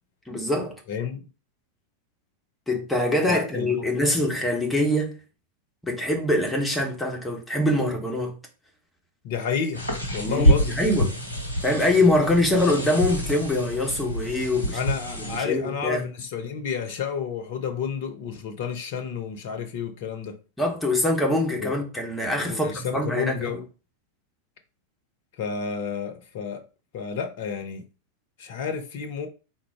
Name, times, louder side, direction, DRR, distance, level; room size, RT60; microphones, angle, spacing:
voice 1, 0.3-0.8 2.7-5.2 5.8-8.3 10.2-11.1 11.6-14.8 15.2-16.0 20.6-23.3, left 1 dB, 5° left, 1.4 m, -24 dB
voice 2, 0.9-1.2 3.3-3.9 9.2-9.8 10.1-10.8 14.7-20.4 21.6-21.7 22.5-23.6 25.4-26.6 26.9-27.8 28.4-29.3, left 6 dB, 50° left, 0.8 m, -30 dB
sound 1, 9.7-15.4, equal, 85° right, 1.2 m, -26 dB
3.9 x 2.6 x 4.7 m
figure-of-eight pair, 90°, 0 cm